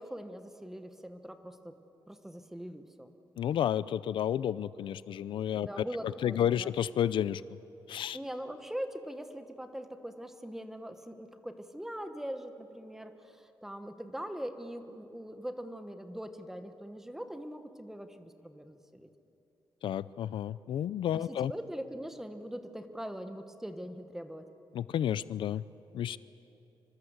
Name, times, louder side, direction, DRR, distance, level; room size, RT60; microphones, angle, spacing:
voice 1, 0.0-1.8 2.1-3.1 5.5-6.7 8.1-19.1 21.1-24.5, equal, 5° right, 8 dB, 1.2 m, -42 dB
voice 2, 3.4-5.8 6.2-7.4 7.9-8.2 19.8-21.5 24.7-25.6 25.9-26.2, left 10 dB, 80° left, 17 dB, 0.5 m, -31 dB
25.0 x 24.5 x 8.1 m, 2.9 s
wide cardioid pair, 170°, 8 cm